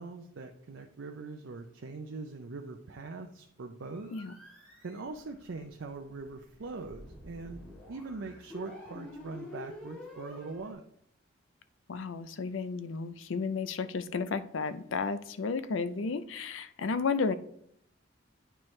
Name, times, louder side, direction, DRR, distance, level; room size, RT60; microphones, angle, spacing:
voice 1, 0.0-4.1 4.8-7.6 7.9-10.8, right 3 dB, 80° right, 0.5 m, -42 dB
sound 1, 3.9-10.7, left 1 dB, 5° left, 1.8 m, -48 dB
voice 2, 11.9-17.3, left 4 dB, 85° left, 0.5 m, -33 dB
8.9 x 4.6 x 3.2 m
head